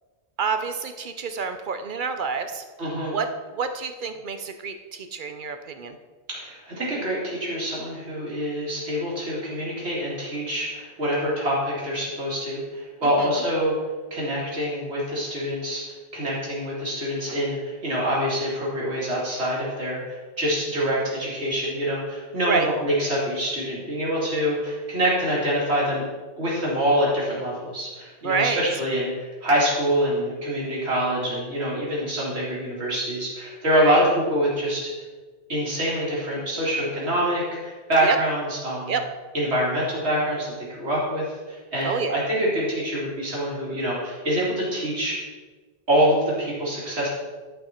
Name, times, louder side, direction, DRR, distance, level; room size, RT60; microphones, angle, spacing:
voice 1, 0.4-2.6 3.1-3.3 3.5-6.0 13.0-13.4 22.5-22.7 28.2-28.6 33.8-34.0 38.0-38.2 38.9-39.0 41.8-42.2, right 5 dB, 55° right, 8 dB, 0.7 m, -28 dB
voice 2, 2.8-3.2 6.3-13.8 14.1-15.8 16.1-26.0 26.4-34.9 35.5-39.0 39.3-45.2 45.9-47.1, equal, 75° right, -6 dB, 2.9 m, -25 dB
11.0 x 5.5 x 4.4 m, 1.3 s
omnidirectional pair, 1.1 m